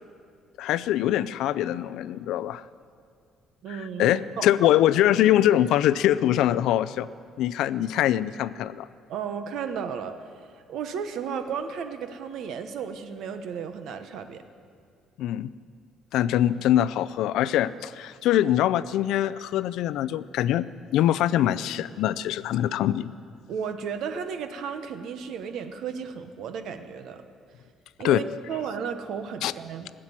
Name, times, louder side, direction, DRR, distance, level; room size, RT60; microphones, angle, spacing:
voice 1, 0.6-2.6 3.7-7.1 7.4-8.9 15.2-15.5 16.1-23.1 28.0-28.2 29.4-29.5, left 12 dB, 65° left, 16 dB, 0.4 m, -23 dB
voice 2, 3.6-4.5 5.3-5.4 9.1-10.2 10.5-14.4 23.5-27.2 28.0-29.9, right 7 dB, 55° right, 8 dB, 0.9 m, -34 dB
15.5 x 7.5 x 9.7 m, 2.2 s
cardioid pair, 180°, 0 cm